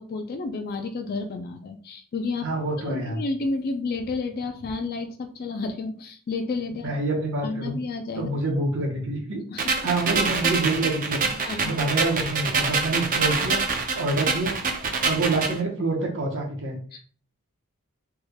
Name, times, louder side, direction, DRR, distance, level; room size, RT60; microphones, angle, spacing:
voice 1, 0.0-2.5 2.9-6.9 7.4-8.3 9.5-9.6 11.5-11.7 16.9-17.0, left 3 dB, 45° left, 6 dB, 0.3 m, -31 dB
voice 2, 2.4-3.2 6.8-7.8 8.1-11.3 11.6-13.6 13.9-14.5 15.0-17.0, right 2 dB, 60° right, 0 dB, 1.0 m, -27 dB
sound 1, 9.6-15.6, right 4 dB, 40° right, 0.5 m, -26 dB
3.5 x 3.3 x 2.2 m, 0.43 s
head